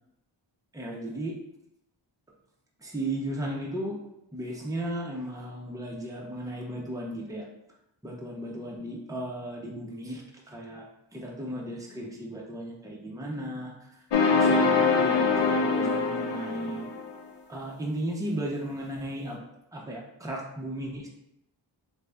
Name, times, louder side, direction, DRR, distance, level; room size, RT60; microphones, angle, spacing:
voice 1, 0.7-1.4 2.8-4.0 4.3-7.5 8.0-10.2 10.5-10.9 11.1-13.7 14.3-16.9 17.5-19.4 19.7-21.1, right 1 dB, 5° right, -2 dB, 0.7 m, -35 dB
sound 1, 14.1-17.1, left 4 dB, 60° left, 0.6 m, -24 dB
3.3 x 2.5 x 3.3 m, 0.84 s
wide cardioid pair, 60°, 48 cm